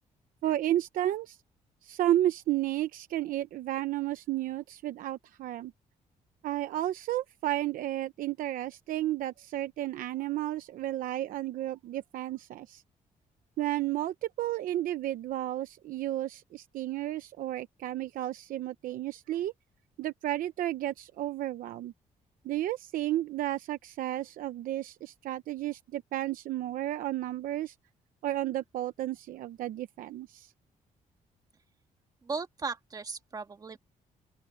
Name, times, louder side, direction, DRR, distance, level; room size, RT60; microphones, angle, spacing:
voice 1, 0.4-1.4 1.8-5.7 6.4-12.8 13.6-19.5 20.0-21.9 22.4-27.7 28.2-30.5, right 13 dB, 80° right, 0.8 m, -32 dB
voice 2, 32.2-33.8, right 4 dB, 25° right, 1.8 m, -37 dB
open air
cardioid pair, 140°, 14 cm